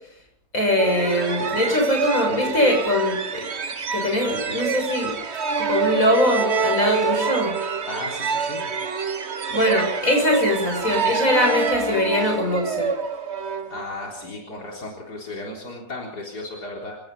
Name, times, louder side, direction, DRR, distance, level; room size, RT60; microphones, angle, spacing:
voice 1, 0.5-3.4 3.9-5.1 5.6-7.6 9.5-12.9, left 1 dB, 55° left, 2 dB, 7.4 m, -22 dB
sound 1, 0.8-14.3, right 5 dB, 45° right, 1.4 m, -26 dB
voice 2, 7.9-8.6 13.7-17.0, left 2 dB, 85° left, -1 dB, 4.4 m, -35 dB
29.0 x 17.0 x 5.4 m, 0.68 s
omnidirectional pair, 1.7 m